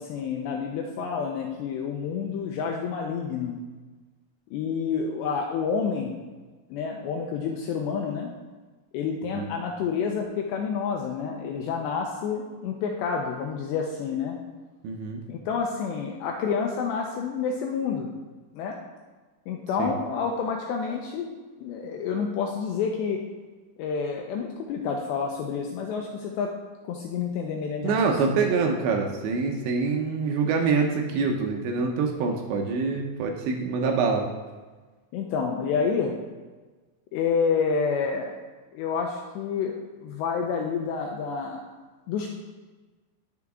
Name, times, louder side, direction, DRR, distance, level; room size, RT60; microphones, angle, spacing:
voice 1, 0.0-3.6 4.5-6.2 6.7-8.3 8.9-14.4 15.3-18.1 18.5-18.8 19.5-21.3 21.6-23.2 23.8-26.5 26.8-28.4 35.1-36.2 37.1-38.3 38.7-41.7 42.1-42.3, left 6 dB, 80° left, 2 dB, 2.6 m, -29 dB
voice 2, 14.8-15.2 19.8-19.9 27.8-34.3, right 4 dB, 75° right, 2 dB, 2.9 m, -25 dB
12.0 x 6.9 x 3.6 m, 1.3 s
omnidirectional pair, 5.7 m